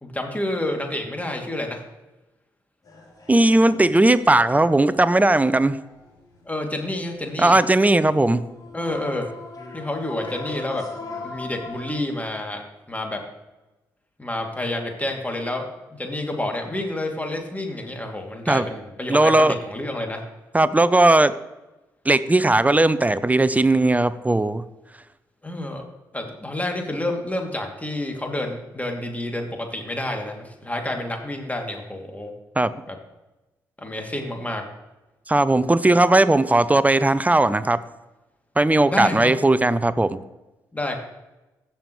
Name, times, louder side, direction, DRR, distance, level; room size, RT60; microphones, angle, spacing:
voice 1, 0.0-1.8 6.5-7.6 8.7-9.3 9.7-10.8 11.2-12.6 12.9-13.2 14.2-20.2 25.4-25.8 26.1-32.3 32.9-33.0 33.8-34.6 38.9-39.3 40.7-41.0, left 1 dB, 15° left, 2 dB, 2.7 m, -29 dB
sound 1, 2.8-6.7 7.6-11.9, left 3 dB, 40° left, 4.1 m, -40 dB
voice 2, 3.3-5.8 7.4-8.4 18.5-18.7 19.1-19.5 20.5-21.3 22.1-24.6 32.6-32.7 35.3-37.8 38.6-40.2, right 2 dB, 15° right, 15 dB, 0.7 m, -18 dB
16.0 x 7.0 x 3.2 m, 1.0 s
hypercardioid pair, 40°, 10 cm